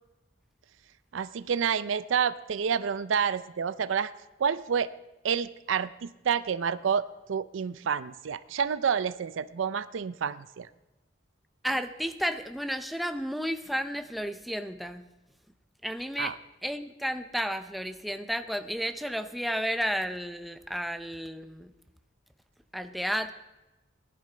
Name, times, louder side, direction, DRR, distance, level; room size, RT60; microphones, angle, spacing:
voice 1, 1.1-4.1 4.4-4.9 5.2-10.7 16.2-16.4, right 7 dB, 80° right, 15 dB, 0.4 m, -29 dB
voice 2, 11.6-15.0 15.8-16.3 16.6-21.7 22.7-23.3, equal, ahead, 8 dB, 0.6 m, -32 dB
18.0 x 11.5 x 3.4 m, 1.0 s
head